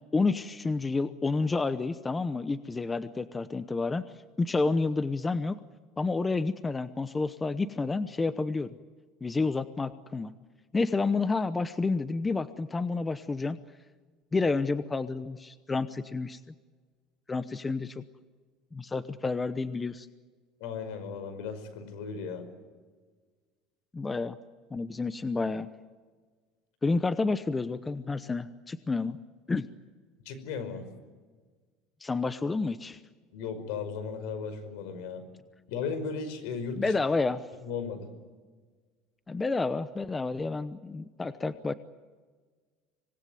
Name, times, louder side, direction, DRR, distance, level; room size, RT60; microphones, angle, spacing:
voice 1, 0.1-4.0 4.4-5.6 6.0-8.7 9.2-10.3 10.7-13.6 14.3-16.4 17.3-18.0 18.7-20.1 23.9-24.4 24.7-25.7 26.8-29.2 29.5-29.6 32.0-33.0 36.8-37.4 39.3-41.7, left 3 dB, 15° left, 13 dB, 0.8 m, -29 dB
voice 2, 20.6-22.5 30.3-30.9 33.3-35.2 35.7-36.9 37.6-38.1, left 5 dB, 75° left, 11 dB, 5.3 m, -36 dB
26.0 x 20.0 x 9.4 m, 1.4 s
cardioid pair, 140°, 0 cm